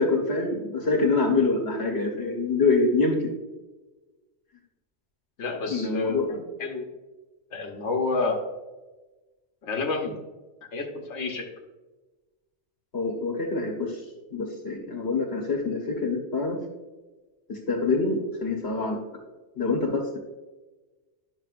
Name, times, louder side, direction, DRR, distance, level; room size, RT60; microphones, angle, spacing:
voice 1, 0.0-3.3 5.7-6.4 12.9-14.0 14.3-16.6 17.5-19.0 19.6-20.2, left 3 dB, 65° left, -1 dB, 1.4 m, -25 dB
voice 2, 5.4-6.8 7.5-8.4 9.6-10.2 10.7-11.5, left 3 dB, 90° left, 1 dB, 1.3 m, -29 dB
11.0 x 6.5 x 2.5 m, 1.2 s
omnidirectional pair, 1.2 m